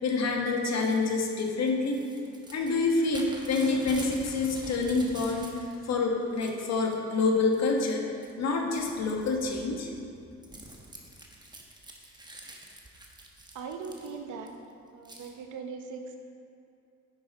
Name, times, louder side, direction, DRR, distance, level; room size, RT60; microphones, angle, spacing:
voice 1, 0.0-2.0 2.5-8.0 8.4-9.9, left 3 dB, 60° left, 1 dB, 1.2 m, -27 dB
Crumpling crinkling / Tearing, 0.6-5.9 6.2-7.0 7.5-7.9 8.2-14.5 15.1-15.3, right 1 dB, 15° right, 1.1 m, -47 dB
voice 2, 13.5-14.5 14.9-16.2, right 5 dB, 80° right, 5 dB, 0.9 m, -39 dB
9.8 x 5.7 x 4.0 m, 2.5 s
cardioid pair, 90°, 30 cm